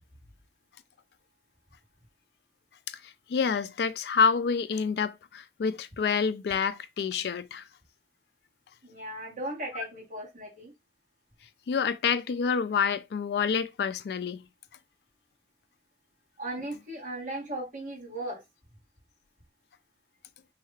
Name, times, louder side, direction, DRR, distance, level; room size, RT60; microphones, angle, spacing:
voice 1, 2.9-7.6 11.7-14.4, left 6 dB, 65° left, 0.3 m, -28 dB
voice 2, 8.8-10.7 16.4-18.4, right 1 dB, 45° right, 1.5 m, -37 dB
3.2 x 2.4 x 3.1 m
head